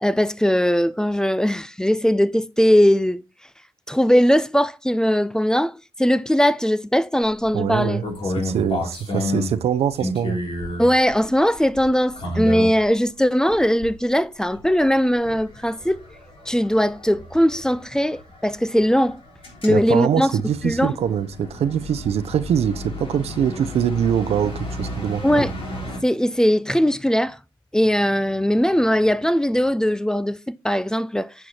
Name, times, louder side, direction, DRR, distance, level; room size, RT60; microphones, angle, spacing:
voice 1, 0.0-3.2 3.9-5.7 6.0-8.0 10.8-16.0 16.5-19.2 19.6-20.4 20.6-21.0 25.2-25.5 26.0-27.4 27.7-31.3, equal, 5° left, 0.6 m, -20 dB
sound 1, 7.2-13.0 13.5-14.1 14.4-26.0, left 1 dB, 60° left, 3.4 m, -32 dB
voice 2, 7.5-8.0 8.4-10.4 19.7-24.5 24.8-25.5, right 8 dB, 75° right, 0.7 m, -23 dB
9.7 x 4.9 x 4.4 m
supercardioid pair, 45°, 11 cm